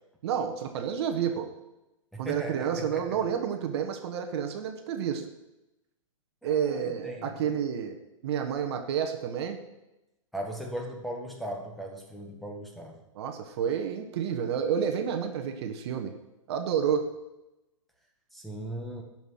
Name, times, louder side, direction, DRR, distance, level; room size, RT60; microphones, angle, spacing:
voice 1, 0.2-1.5 2.2-5.3 6.4-8.0 8.2-9.6 13.1-16.1 16.5-17.1, right 8 dB, 50° right, 5 dB, 1.3 m, -30 dB
voice 2, 2.1-3.0 6.4-7.4 10.3-13.0 18.3-19.0, equal, ahead, 0 dB, 1.8 m, -38 dB
11.5 x 6.0 x 6.5 m, 0.96 s
hypercardioid pair, 125°, 17 cm